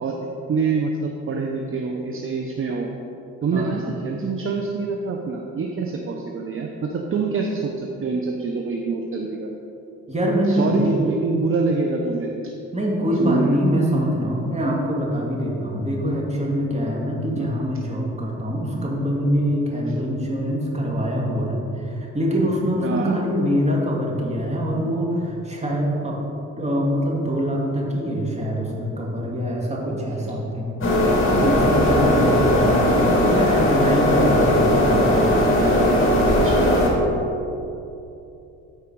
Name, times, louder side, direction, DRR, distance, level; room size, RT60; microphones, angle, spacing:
voice 1, 0.0-2.9 3.4-9.5 10.5-12.3 13.2-13.6 17.4-17.5 22.8-23.2 36.2-36.7, right 4 dB, 45° right, 1 dB, 0.8 m, -25 dB
voice 2, 10.1-11.0 12.7-26.2 26.6-30.8 31.3-35.3, equal, 20° right, -2 dB, 2.2 m, -24 dB
sound 1, 30.8-36.9, left 1 dB, 45° left, 2.3 m, -18 dB
14.0 x 4.8 x 4.7 m, 2.9 s
cardioid pair, 90°, 30 cm